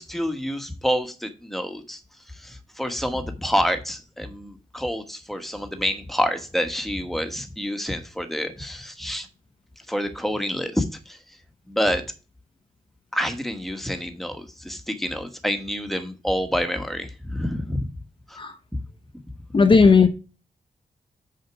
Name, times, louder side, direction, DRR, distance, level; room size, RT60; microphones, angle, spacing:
voice 1, 0.0-2.0 2.4-9.3 9.9-11.2 11.7-12.0 13.1-17.9 18.3-18.4 18.7-18.8 19.7-19.9, equal, ahead, 1.3 m, -28 dB
voice 2, 19.5-20.1, left 5 dB, 35° left, 0.8 m, -14 dB
6.5 x 5.8 x 5.9 m
wide cardioid pair, 135°, 15 cm